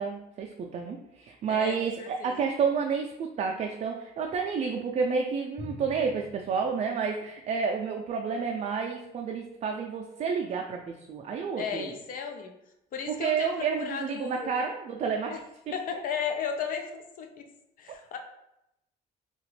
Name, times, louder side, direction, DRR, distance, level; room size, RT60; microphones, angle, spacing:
voice 1, 0.0-11.9 13.1-15.3, right 5 dB, 40° right, 2 dB, 0.4 m, -30 dB
voice 2, 1.5-2.3 11.6-12.6 12.9-14.5 15.3-15.4 15.7-16.9 17.2-17.4 17.8-18.2, left 6 dB, 55° left, 4 dB, 0.4 m, -34 dB
Drum, 5.6-8.0, left 1 dB, 5° left, 0.5 m, -47 dB
2.8 x 2.4 x 3.1 m, 0.85 s
cardioid pair, 110°, 17 cm